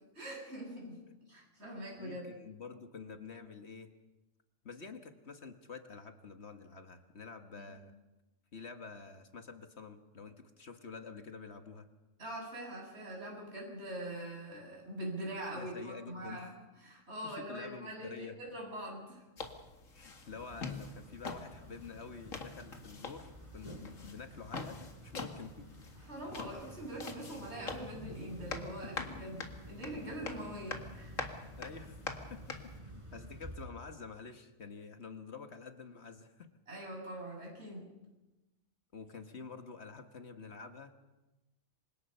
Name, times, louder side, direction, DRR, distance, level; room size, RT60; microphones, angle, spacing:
voice 1, 0.1-1.0 1.3-2.3 7.6-7.7 12.2-16.5 16.8-19.2 26.0-31.2 36.7-37.9, right 1 dB, 55° right, -1 dB, 7.9 m, -43 dB
voice 2, 2.0-3.9 4.6-7.9 8.5-11.9 15.5-16.5 17.2-18.4 19.9-25.7 28.4-28.5 28.8-28.9 31.6-32.0 32.3-36.5 38.9-40.9, left 5 dB, 55° left, 7 dB, 1.6 m, -48 dB
sound 1, 19.4-32.8, left 4 dB, 85° left, 2.3 m, -45 dB
sound 2, 20.2-33.6, equal, 25° right, 4.8 m, -51 dB
28.0 x 25.0 x 5.6 m, 1.0 s
omnidirectional pair, 1.3 m